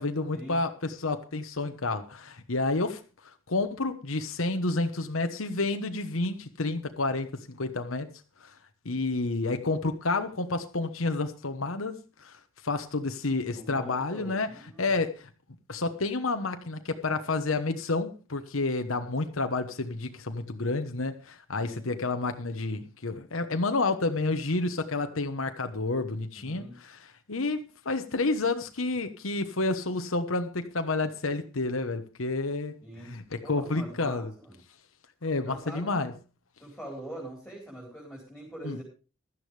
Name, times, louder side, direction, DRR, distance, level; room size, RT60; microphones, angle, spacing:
voice 1, 0.0-3.0 3.5-8.1 8.4-8.5 8.8-14.5 14.8-15.3 15.7-27.0 27.3-34.3 35.2-36.1 38.6-38.8, left 3 dB, 75° left, 1.2 m, -30 dB
voice 2, 13.5-15.0 21.6-21.8 26.4-26.7 32.8-33.2 33.4-34.6 35.4-36.0 36.6-38.8, right 1 dB, 5° left, 4.7 m, -43 dB
16.0 x 12.5 x 3.4 m
head